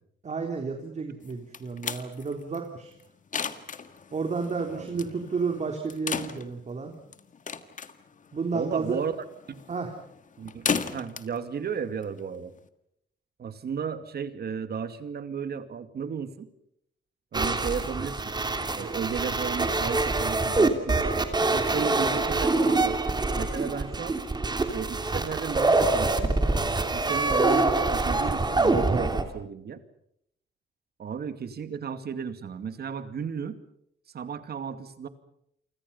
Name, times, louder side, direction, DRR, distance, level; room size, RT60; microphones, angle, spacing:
voice 1, 0.2-2.9 4.1-6.9 8.3-9.0 9.7-9.9, right 4 dB, 35° right, 3 dB, 3.5 m, -31 dB
sound 1, 1.2-12.7, left 6 dB, 40° left, 1.8 m, -36 dB
voice 2, 8.5-9.2 9.5-9.6 10.4-12.5 13.4-16.5 17.3-18.3 18.8-21.0 21.5-23.0 23.3-24.2 24.7-26.3 26.9-29.8 31.0-33.6 34.1-35.1, right 6 dB, 55° right, 10 dB, 2.4 m, -34 dB
sound 2, 17.3-29.2, right 2 dB, 20° right, 3.0 m, -25 dB
29.0 x 25.5 x 5.6 m, 0.73 s
cardioid pair, 135°, 20 cm